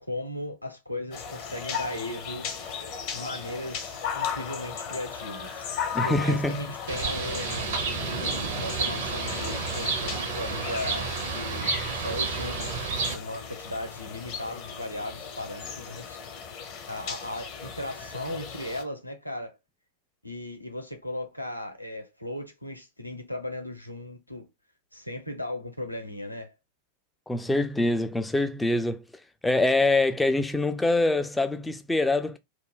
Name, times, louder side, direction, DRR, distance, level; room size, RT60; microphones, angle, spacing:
voice 1, 0.0-2.5 3.1-5.7 6.0-8.0 8.5-12.8 13.1-16.2 16.9-19.6 20.2-24.5 24.9-26.5, left 1 dB, 90° left, 0.5 m, -37 dB
sound 1, 1.1-18.8, left 7 dB, 40° left, 0.6 m, -37 dB
voice 2, 5.9-6.6 27.3-29.0 29.4-32.4, left 2 dB, 5° left, 0.3 m, -24 dB
Bird, 6.9-13.1, right 4 dB, 60° right, 0.8 m, -30 dB
2.3 x 2.1 x 3.6 m
figure-of-eight pair, 90°, 0 cm